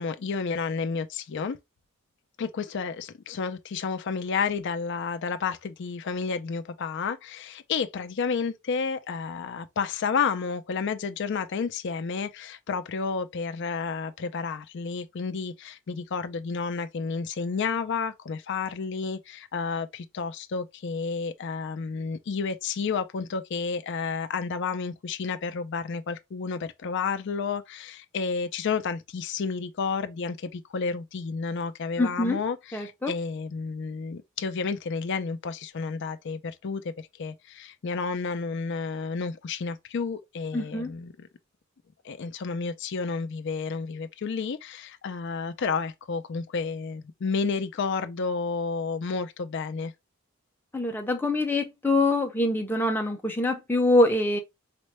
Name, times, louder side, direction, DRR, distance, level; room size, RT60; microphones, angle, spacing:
voice 1, 0.0-1.6 2.4-41.3 42.0-49.9, left 5 dB, 55° left, 0.4 m, -31 dB
voice 2, 32.0-32.4 32.7-33.1 40.5-40.9 50.7-54.4, left 2 dB, 10° left, 0.6 m, -24 dB
4.3 x 2.1 x 3.0 m
head